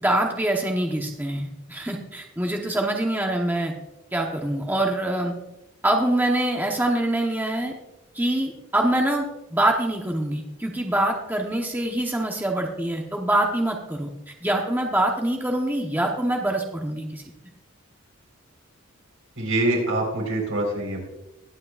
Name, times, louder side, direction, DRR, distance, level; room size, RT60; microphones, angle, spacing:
voice 1, 0.0-3.7 4.1-5.3 5.8-7.7 8.1-17.2, right 1 dB, 10° right, 1 dB, 0.9 m, -25 dB
voice 2, 19.4-21.0, right 2 dB, 85° right, 0 dB, 4.1 m, -24 dB
21.0 x 8.5 x 2.4 m, 0.90 s
head